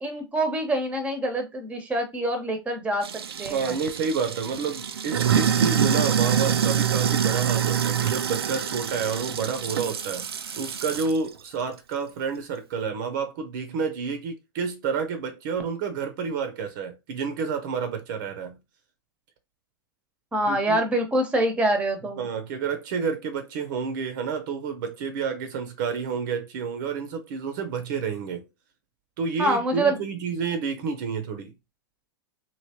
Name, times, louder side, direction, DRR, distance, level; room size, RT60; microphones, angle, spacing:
voice 1, 0.0-3.1 3.4-3.8 20.3-22.3 29.4-30.0, right 1 dB, 10° right, 0.9 m, -25 dB
Sink (filling or washing), 3.0-11.2, right 8 dB, 85° right, 0.4 m, -25 dB
voice 2, 3.5-10.3 10.5-18.6 20.5-20.8 22.2-28.4 29.2-31.5, right 5 dB, 55° right, 0.7 m, -29 dB
3.1 x 2.8 x 2.8 m
hypercardioid pair, 110°, 12 cm